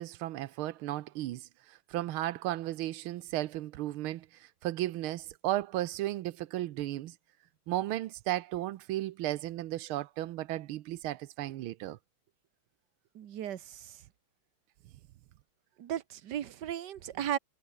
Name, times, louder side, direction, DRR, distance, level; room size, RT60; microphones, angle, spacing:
voice 1, 0.0-7.1 7.7-12.0, right 15 dB, 80° right, 1.6 m, -35 dB
voice 2, 13.1-13.9 15.8-17.4, right 11 dB, 60° right, 1.6 m, -36 dB
omnidirectional pair, 2.3 m